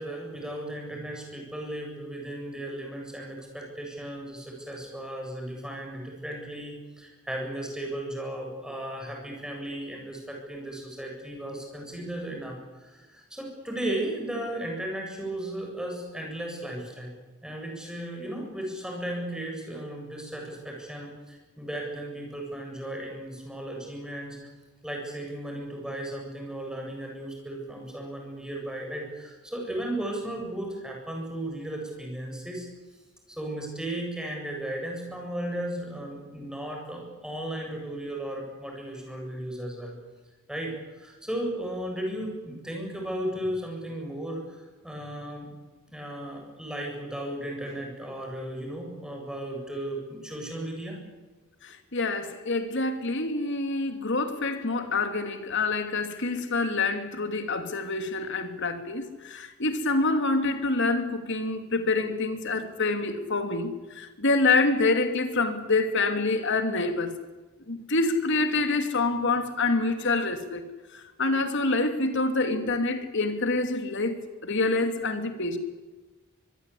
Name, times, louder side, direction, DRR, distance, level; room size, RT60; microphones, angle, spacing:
voice 1, 0.0-17.1 17.4-24.4 24.8-32.7 33.3-40.0 40.5-44.6 44.8-45.5 45.9-51.0, right 1 dB, 5° right, 7.6 m, -35 dB
voice 2, 51.6-67.1 67.7-70.6 70.9-75.6, left 3 dB, 60° left, 2.8 m, -26 dB
24.5 x 21.5 x 8.6 m
head